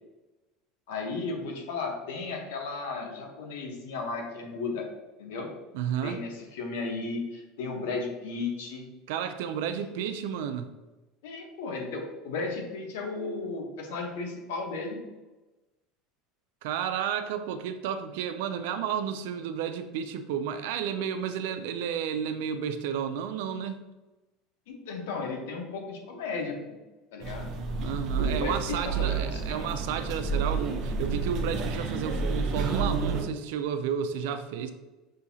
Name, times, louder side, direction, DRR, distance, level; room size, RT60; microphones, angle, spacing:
voice 1, 0.9-4.9 5.2-5.5 6.0-8.9 11.2-15.0 24.7-26.8 27.1-27.5 28.2-29.7, left 3 dB, 90° left, 2 dB, 1.0 m, -34 dB
voice 2, 5.7-6.2 9.1-10.7 16.6-23.8 27.8-34.7, right 8 dB, 80° right, 8 dB, 0.4 m, -32 dB
sound 1, 27.2-33.2, right 4 dB, 50° right, 0.7 m, -30 dB
6.2 x 2.7 x 2.8 m, 1.1 s
supercardioid pair, 130°, 0 cm